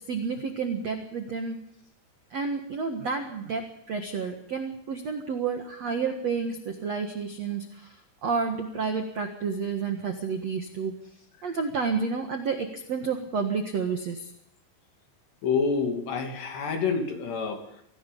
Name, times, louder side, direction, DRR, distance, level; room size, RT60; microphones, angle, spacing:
voice 1, 0.1-1.6 2.3-11.0 11.4-14.3, right 5 dB, 65° right, 5 dB, 1.6 m, -30 dB
voice 2, 15.4-17.8, left 5 dB, 60° left, 4 dB, 4.7 m, -28 dB
25.5 x 18.5 x 5.4 m, 0.75 s
omnidirectional pair, 5.7 m